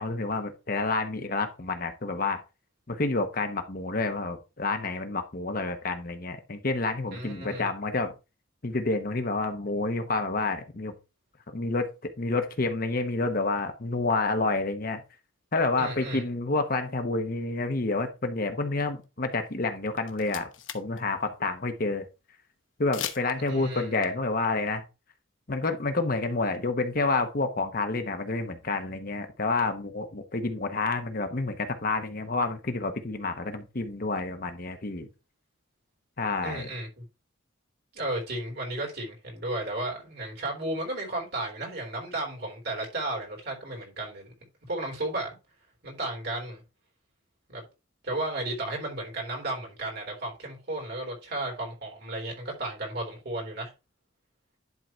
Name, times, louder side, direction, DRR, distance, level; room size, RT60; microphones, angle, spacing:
voice 1, 0.0-2.4 2.9-8.1 8.6-10.9 11.5-15.0 15.5-20.5 20.7-22.0 22.8-24.8 25.5-35.1 36.2-36.7, left 3 dB, 45° left, 1.0 m, -29 dB
voice 2, 7.1-7.7 15.8-16.2 23.5-24.1 36.4-37.0 37.9-44.3 44.7-45.4 45.8-46.6 47.5-47.6 48.0-53.7, right 2 dB, 55° right, 3.7 m, -34 dB
sound 1, 19.7-19.8 20.0-21.0 21.3-21.4 22.9-23.5, left 10 dB, 75° left, 1.0 m, -37 dB
11.0 x 3.9 x 4.4 m
head